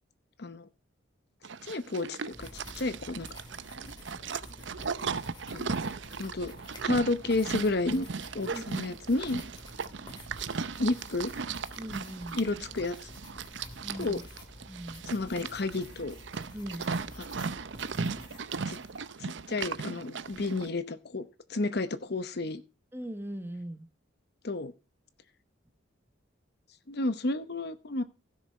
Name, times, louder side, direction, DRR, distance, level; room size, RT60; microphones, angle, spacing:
Livestock farm animals working animals, 1.4-20.7, right 5 dB, 65° right, 0.6 m, -37 dB
voice 1, 1.6-3.3 5.0-5.2 5.5-5.8 6.2-6.5 6.8-8.1 8.3-9.4 10.8-11.3 12.4-12.9 14.0-14.2 15.1-16.2 18.6-18.8 19.2-22.6 24.4-24.7 26.9-28.0, left 2 dB, 55° left, 13 dB, 0.8 m, -31 dB
sound 1, 2.3-19.0, left 1 dB, 20° left, 2.2 m, -49 dB
voice 2, 11.8-12.4 13.8-14.2 14.7-15.1 16.5-16.8 22.9-23.9, right 1 dB, 10° right, 9 dB, 1.0 m, -40 dB
16.0 x 6.6 x 4.3 m, 0.30 s
head